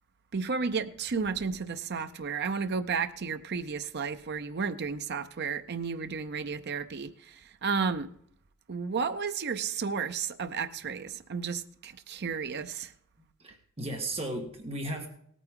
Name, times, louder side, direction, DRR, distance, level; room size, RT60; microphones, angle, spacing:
voice 1, 0.3-8.1 8.7-12.9, right 5 dB, 50° right, 9 dB, 0.6 m, -32 dB
voice 2, 13.4-15.1, right 1 dB, 30° right, 3 dB, 1.6 m, -35 dB
18.0 x 9.2 x 3.7 m, 0.67 s
head